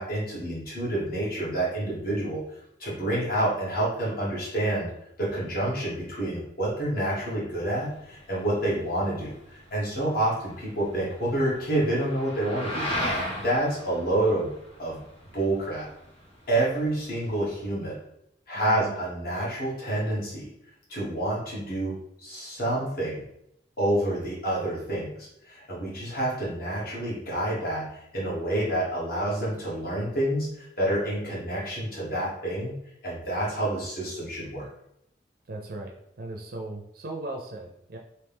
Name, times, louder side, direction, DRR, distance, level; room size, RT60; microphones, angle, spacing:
voice 1, 0.0-2.4 2.8-4.9 5.2-12.9 13.3-14.5 14.8-15.0 15.3-15.9 16.5-18.0 18.5-20.5 20.9-23.2 23.8-34.7, right 1 dB, 55° left, -6 dB, 1.4 m, -28 dB
sound 1, 7.7-17.7, equal, 30° left, 0.8 m, -37 dB
voice 2, 18.5-18.9 35.5-35.9 36.2-38.0, right 2 dB, 55° right, 1 dB, 0.5 m, -37 dB
3.2 x 2.8 x 3.5 m, 0.79 s
head